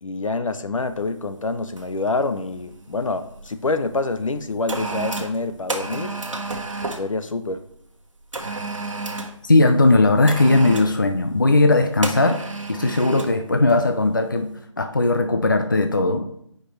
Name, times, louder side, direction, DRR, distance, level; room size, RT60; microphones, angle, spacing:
voice 1, 0.0-6.2 6.9-7.6, left 3 dB, 80° left, 10 dB, 0.9 m, -26 dB
sound 1, 0.9-1.1 1.8-2.1 2.3-3.5 4.2-7.1 8.3-9.4 10.3-11.0 12.0-13.4 13.7-13.9, right 3 dB, 75° right, 1.3 m, -31 dB
voice 2, 9.4-14.5 14.8-16.3, left 2 dB, 40° left, 6 dB, 0.5 m, -18 dB
10.0 x 5.1 x 3.3 m, 0.69 s
figure-of-eight pair, 180°, 17 cm